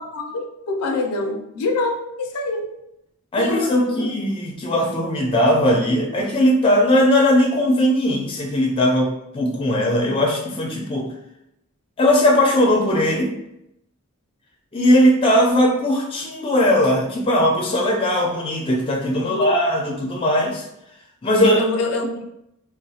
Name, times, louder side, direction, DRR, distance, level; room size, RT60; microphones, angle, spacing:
voice 1, 0.0-2.7 3.4-4.2 19.2-19.5 21.3-22.2, left 2 dB, 90° left, 4 dB, 0.4 m, -25 dB
voice 2, 3.3-11.1 12.0-13.3 14.7-20.6 21.2-21.6, left 1 dB, 25° left, 1 dB, 0.4 m, -19 dB
3.0 x 2.0 x 2.7 m, 0.81 s
head